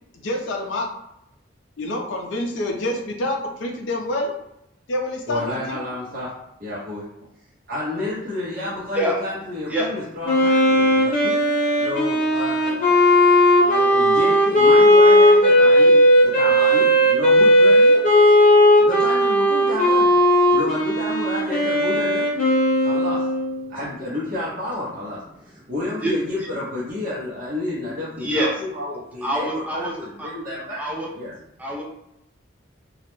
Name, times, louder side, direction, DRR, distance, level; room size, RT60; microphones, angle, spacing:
voice 1, 0.2-0.9 1.8-4.3 4.9-5.8, left 1 dB, 75° left, 2 dB, 0.5 m, -27 dB
voice 2, 5.3-6.3 6.6-7.1 7.7-11.4 11.8-13.0 13.5-17.9 18.8-20.1 20.5-22.3 22.8-23.2 23.7-25.2 25.4-30.8 31.1-31.3, left 1 dB, 45° right, -8 dB, 0.6 m, -30 dB
Wind instrument woodwind instrument, 10.2-23.6, equal, 45° left, 0.8 m, -16 dB
voice 3, 28.2-28.5 29.2-30.3 30.8-31.1 31.6-31.8, equal, 5° right, -3 dB, 0.3 m, -25 dB
2.3 x 2.0 x 3.0 m, 0.82 s
head